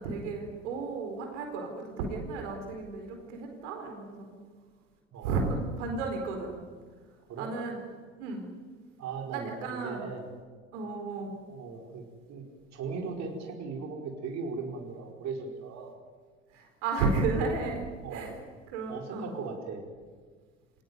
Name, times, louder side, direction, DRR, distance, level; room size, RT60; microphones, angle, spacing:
voice 1, 0.0-4.3 5.2-6.6 7.4-7.8 8.2-8.4 9.3-10.1 10.7-11.3 16.5-18.3 18.7-19.3, right 3 dB, 65° right, 3 dB, 4.6 m, -33 dB
voice 2, 5.1-5.5 7.3-7.5 9.0-10.3 11.5-12.4 12.7-15.9 18.0-18.3 18.9-19.8, right 4 dB, 45° right, 1 dB, 4.7 m, -38 dB
28.5 x 18.5 x 9.6 m, 1.5 s
figure-of-eight pair, 70°, 39 cm